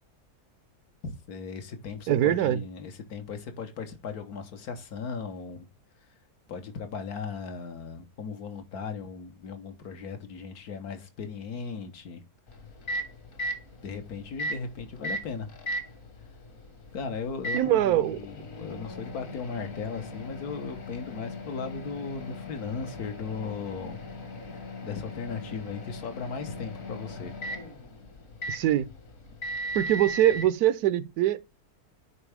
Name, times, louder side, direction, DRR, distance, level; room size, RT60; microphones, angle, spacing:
voice 1, 1.0-5.7 6.5-12.2 13.8-15.5 16.9-24.0 24.4-27.3, left 5 dB, 75° left, 1.6 m, -37 dB
voice 2, 2.1-2.6 17.5-18.2 28.5-28.9 29.7-31.4, right 12 dB, 75° right, 1.1 m, -23 dB
Microwave oven, 12.5-30.5, equal, 60° left, 1.9 m, -38 dB
9.5 x 4.4 x 3.4 m
omnidirectional pair, 1.6 m